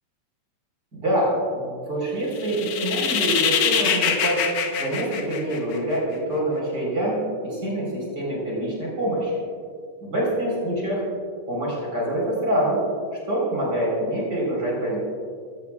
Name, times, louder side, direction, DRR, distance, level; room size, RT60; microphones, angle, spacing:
voice 1, 0.9-4.4 4.8-9.4 10.1-11.0 11.5-12.8 13.3-15.0, right 1 dB, 30° right, -5 dB, 4.9 m, -25 dB
sound 1, 2.4-6.0, left 7 dB, 80° left, 2.6 m, -24 dB
22.0 x 16.0 x 2.5 m, 2.1 s
omnidirectional pair, 3.4 m